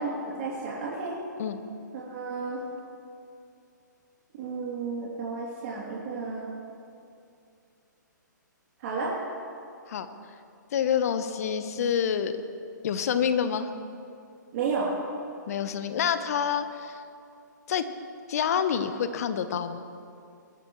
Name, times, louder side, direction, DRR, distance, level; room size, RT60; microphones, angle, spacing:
voice 1, 0.0-1.2 2.0-2.6 4.4-6.5 8.8-9.1 14.5-14.9, right 4 dB, 45° right, -6 dB, 2.9 m, -32 dB
voice 2, 10.7-12.3 12.8-13.7 15.5-17.0 17.7-17.9 18.3-19.8, left 8 dB, 50° left, 11 dB, 0.9 m, -27 dB
21.0 x 14.0 x 3.2 m, 2.5 s
hypercardioid pair, 130°, 10 cm